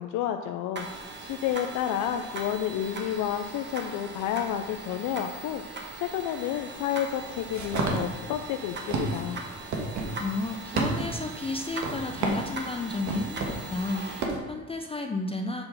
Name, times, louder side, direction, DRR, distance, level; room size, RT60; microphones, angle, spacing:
voice 1, 0.0-9.4, left 10 dB, 90° left, 6 dB, 0.5 m, -31 dB
sound 1, 0.8-14.3, right 3 dB, 35° right, 1.1 m, -40 dB
sound 2, 7.1-14.4, right 3 dB, 70° right, 1.4 m, -32 dB
voice 2, 10.2-15.6, left 2 dB, 20° left, 4 dB, 0.4 m, -32 dB
7.8 x 3.8 x 5.7 m, 1.2 s
cardioid pair, 90°, 30 cm